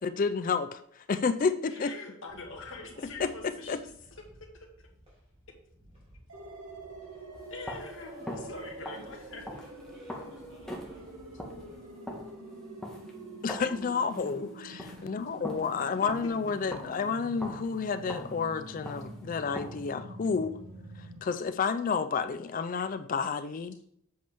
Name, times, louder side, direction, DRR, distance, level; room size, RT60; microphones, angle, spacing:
voice 1, 0.0-1.9 3.2-3.8 13.4-20.6 21.0-23.8, left 5 dB, 40° left, 11 dB, 0.3 m, -30 dB
voice 2, 1.7-3.9 4.4-4.5 4.8-4.9 7.5-9.7 14.2-14.4 15.8-16.3, left 3 dB, 60° left, 1 dB, 1.6 m, -44 dB
sound 1, 2.3-11.7, equal, 25° right, 2.9 m, -58 dB
voice 3, 2.9-3.3 8.0-9.2 9.8-11.1 11.5-12.1, left 1 dB, 50° right, -3 dB, 2.5 m, -58 dB
sound 2, 6.3-21.2, right 1 dB, 85° right, 1.8 m, -46 dB
sound 3, 7.3-19.9, equal, 5° left, 1.3 m, -43 dB
7.8 x 6.9 x 3.5 m, 0.70 s
head